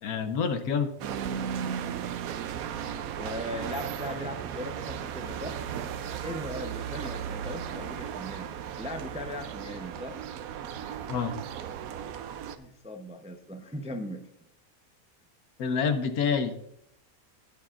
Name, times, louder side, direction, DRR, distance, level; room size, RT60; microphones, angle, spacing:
voice 1, 0.0-0.9 11.1-11.3 15.6-16.7, left 6 dB, 80° left, 9 dB, 1.3 m, -27 dB
sound 1, 1.0-12.6, right 8 dB, 75° right, 1.0 m, -36 dB
voice 2, 3.1-5.6 6.2-8.5 8.8-10.2 12.6-14.3, left 1 dB, 10° right, 5 dB, 0.4 m, -38 dB
20.0 x 6.8 x 2.5 m, 0.76 s
omnidirectional pair, 1.6 m